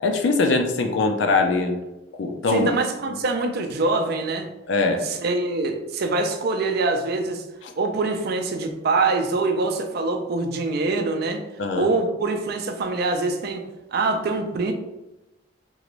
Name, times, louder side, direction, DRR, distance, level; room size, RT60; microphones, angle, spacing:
voice 1, 0.0-1.8 2.2-2.7 4.7-5.0 11.6-11.9, left 3 dB, 75° left, 4 dB, 0.4 m, -21 dB
voice 2, 2.5-4.5 5.0-7.4 7.8-11.4 11.8-13.6 13.9-14.7, right 3 dB, 55° right, 5 dB, 0.4 m, -24 dB
3.1 x 2.5 x 3.0 m, 0.97 s
head